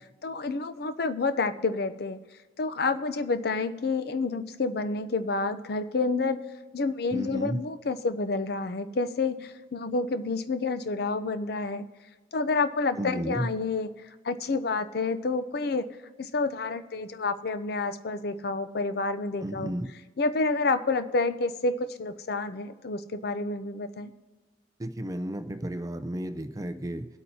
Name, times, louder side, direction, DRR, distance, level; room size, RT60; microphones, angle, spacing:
voice 1, 0.2-2.2 2.6-6.4 6.7-11.9 12.3-13.9 14.2-15.9 16.2-19.7 20.2-24.1, left 3 dB, 60° left, 12 dB, 0.5 m, -29 dB
voice 2, 7.1-7.6 13.0-13.5 19.4-19.9 24.8-27.1, right 1 dB, 20° right, 8 dB, 0.5 m, -32 dB
21.5 x 8.4 x 2.8 m, 1.3 s
head